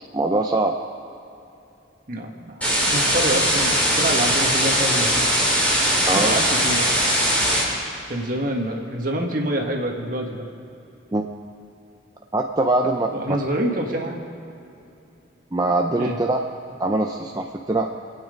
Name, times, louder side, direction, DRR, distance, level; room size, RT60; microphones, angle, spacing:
voice 1, 0.1-0.7 6.1-6.4 11.1-11.3 12.3-13.1 15.5-16.4 16.8-17.9, right 2 dB, 20° right, 2 dB, 0.5 m, -22 dB
voice 2, 2.1-2.6 2.8-5.4 6.0-6.9 7.3-7.8 8.1-10.5 13.1-14.2 16.0-16.2, right 1 dB, 45° right, 1 dB, 1.7 m, -27 dB
sound 1, 2.6-7.6, equal, 5° left, 4.1 m, -20 dB
26.0 x 9.0 x 5.2 m, 2.8 s
head